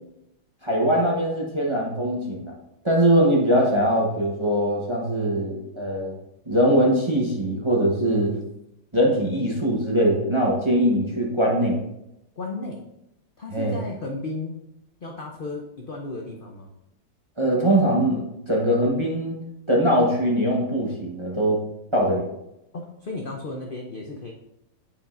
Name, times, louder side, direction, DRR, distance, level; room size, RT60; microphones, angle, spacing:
voice 1, 0.6-2.5 2.8-6.2 6.5-8.3 8.9-11.8 13.5-13.8 17.4-19.4 19.7-21.6 21.9-22.3, equal, 25° right, -3 dB, 0.7 m, -22 dB
voice 2, 12.4-12.8 13.4-14.6 15.0-16.7 22.7-24.3, left 2 dB, 70° left, 0 dB, 0.5 m, -34 dB
8.6 x 5.0 x 2.5 m, 0.84 s
omnidirectional pair, 2.0 m